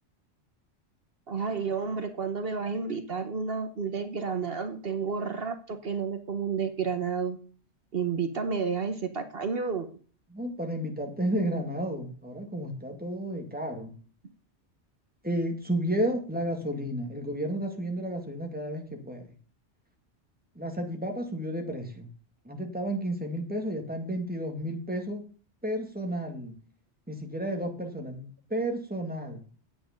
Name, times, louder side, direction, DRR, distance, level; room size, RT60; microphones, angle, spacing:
voice 1, 1.3-7.4 7.9-9.9, right 5 dB, 60° right, 8 dB, 1.3 m, -31 dB
voice 2, 10.3-13.9 15.2-19.2 20.6-22.1 22.4-25.2 25.6-26.5 27.1-29.5, right 1 dB, 10° right, 2 dB, 2.3 m, -32 dB
9.5 x 8.6 x 5.2 m, 0.40 s
omnidirectional pair, 1.2 m